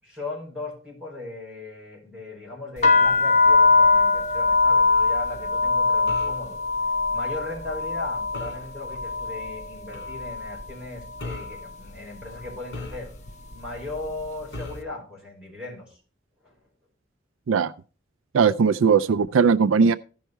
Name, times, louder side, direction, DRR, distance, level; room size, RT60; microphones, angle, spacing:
voice 1, 0.0-6.6 7.1-13.1 13.5-16.0 16.4-16.5, left 2 dB, 5° right, 5.0 m, -37 dB
sound 1, 2.8-10.7 11.0-11.6 12.3-12.5 12.8-14.3, left 3 dB, 35° left, 0.9 m, -22 dB
sound 2, 6.1-6.5 8.3-8.7 9.9-10.2 11.2-11.6 12.7-13.4 14.5-14.9, left 2 dB, 60° left, 2.9 m, -38 dB
voice 2, 18.3-20.0, right 5 dB, 90° right, 0.4 m, -19 dB
14.5 x 5.5 x 4.5 m
head